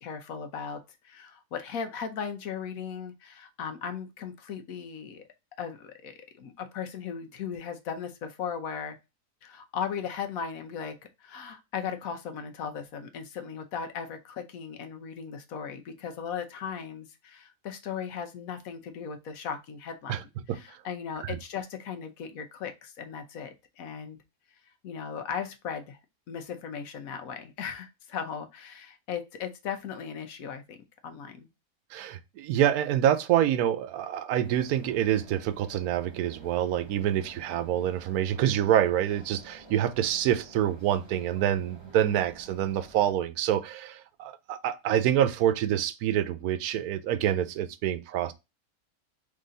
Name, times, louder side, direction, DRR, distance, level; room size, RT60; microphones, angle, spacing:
voice 1, 0.0-5.2 5.6-9.0 9.4-10.9 11.2-20.2 20.5-24.2 24.8-26.0 26.3-30.8 31.0-31.5, left 7 dB, 75° left, 1.2 m, -37 dB
voice 2, 31.9-48.3, right 11 dB, 90° right, 1.1 m, -26 dB
sound 1, 34.4-43.1, right 2 dB, 25° right, 0.8 m, -52 dB
3.8 x 3.3 x 3.9 m
omnidirectional pair, 1.5 m